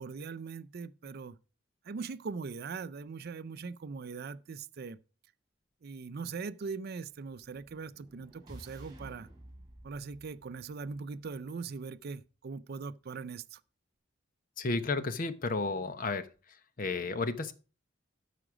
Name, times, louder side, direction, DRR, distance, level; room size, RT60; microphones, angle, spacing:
voice 1, 0.0-1.4 1.8-5.0 5.8-9.3 9.8-13.6, right 4 dB, 55° right, 0.4 m, -41 dB
sound 1, 7.4-11.5, right 1 dB, 25° right, 5.0 m, -53 dB
voice 2, 14.6-16.3 16.8-17.5, left 3 dB, 45° left, 0.8 m, -32 dB
12.5 x 5.0 x 4.9 m
head